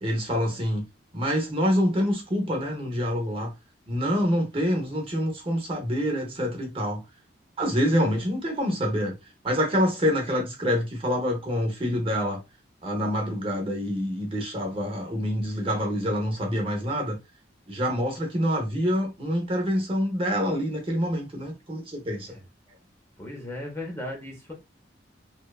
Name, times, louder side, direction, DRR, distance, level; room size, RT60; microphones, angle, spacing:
voice 1, 0.0-0.8 1.1-3.5 3.9-7.0 7.6-9.1 9.4-12.4 12.8-17.2 17.7-22.3, equal, 30° right, 0.6 m, -26 dB
voice 2, 23.2-24.5, left 1 dB, 15° left, 0.5 m, -36 dB
2.7 x 2.2 x 2.2 m
head